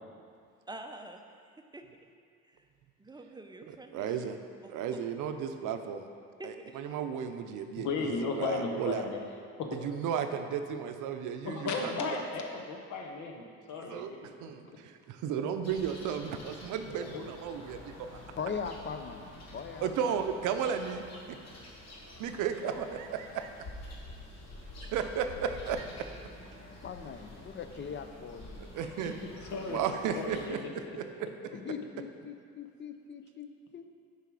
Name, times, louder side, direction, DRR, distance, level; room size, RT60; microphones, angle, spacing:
voice 1, 0.7-1.2 1.6-1.8 2.4-2.6 3.0-4.1 4.6-5.0 6.4-6.8, right 2 dB, 15° right, 5 dB, 0.5 m, -46 dB
voice 2, 3.7-4.4 4.7-6.1 6.4-9.1 9.7-12.0 13.7-18.2 19.8-21.4 22.2-23.5 24.8-25.9 28.6-29.2 29.6-31.6, right 7 dB, 90° right, 7 dB, 0.5 m, -34 dB
voice 3, 7.8-9.2 9.6-9.7 11.4-14.3 17.1-17.2 29.5-29.8 30.1-30.6, left 4 dB, 75° left, 2 dB, 1.0 m, -34 dB
sound 1, 15.6-30.5, left 1 dB, 60° left, 1.5 m, -48 dB
voice 4, 18.4-20.2 26.8-28.6 31.7-33.8, left 6 dB, 40° left, 8 dB, 0.5 m, -40 dB
6.8 x 4.8 x 4.7 m, 2.2 s
cardioid pair, 90°, 30 cm